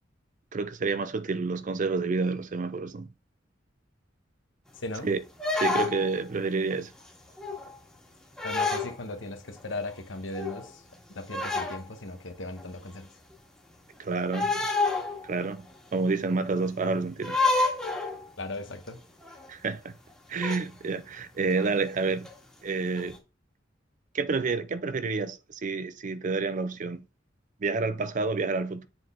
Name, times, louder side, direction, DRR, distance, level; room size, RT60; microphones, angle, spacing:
voice 1, 0.5-3.1 5.0-5.2 5.5-6.9 14.0-14.5 15.2-15.7 15.9-17.4 19.5-19.9 20.3-22.3 22.6-23.2 24.1-27.0 27.6-28.9, right 4 dB, 40° right, 0.5 m, -29 dB
voice 2, 4.8-5.1 8.4-10.8 11.1-13.1 18.4-19.0, left 2 dB, 80° left, 1.1 m, -37 dB
sound 1, 5.4-6.2 6.7-7.0 7.4-7.7 8.4-9.0 9.6-9.7 9.9-10.0 10.3-10.7 11.3-11.9 12.6-12.7 14.3-15.4 15.7-15.8 17.2-18.3 18.9-19.0 19.2-19.5 20.4-20.6 21.5-21.7 22.2-22.4 23.0-23.2, left 3 dB, 5° left, 1.7 m, -28 dB
7.6 x 4.0 x 3.7 m
head